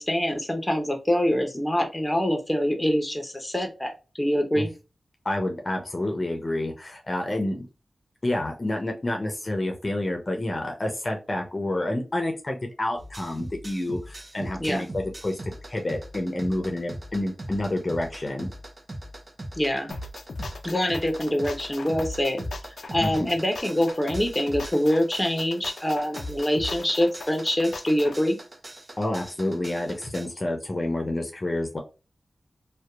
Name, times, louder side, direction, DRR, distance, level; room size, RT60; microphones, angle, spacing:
voice 1, 0.0-4.7 14.6-14.8 19.5-19.9 20.6-22.4 22.9-28.4, equal, 15° left, 3 dB, 0.8 m, -25 dB
voice 2, 5.2-7.7 8.2-18.5 23.0-23.3 29.0-31.8, left 1 dB, 40° left, 2 dB, 0.6 m, -29 dB
sound 1, 13.0-30.3, right 1 dB, 45° right, 0.6 m, -41 dB
sound 2, 19.9-28.2, left 3 dB, 80° left, 0.3 m, -38 dB
2.7 x 2.3 x 2.3 m, 0.30 s
cardioid pair, 45°, 0 cm